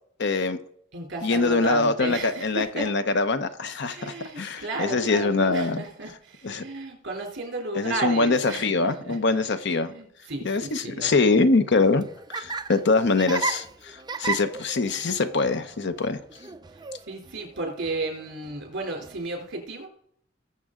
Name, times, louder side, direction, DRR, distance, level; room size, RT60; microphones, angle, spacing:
voice 1, 0.2-0.6 1.2-5.8 6.4-6.6 7.7-9.9 10.4-12.1 12.3-16.2, left 3 dB, 60° left, 0.8 m, -24 dB
voice 2, 0.9-2.9 3.8-9.2 9.8-11.3 17.1-19.9, right 3 dB, 60° right, 3.2 m, -33 dB
Laughter, 11.7-19.3, right 4 dB, 20° right, 0.6 m, -36 dB
20.0 x 6.9 x 3.7 m
head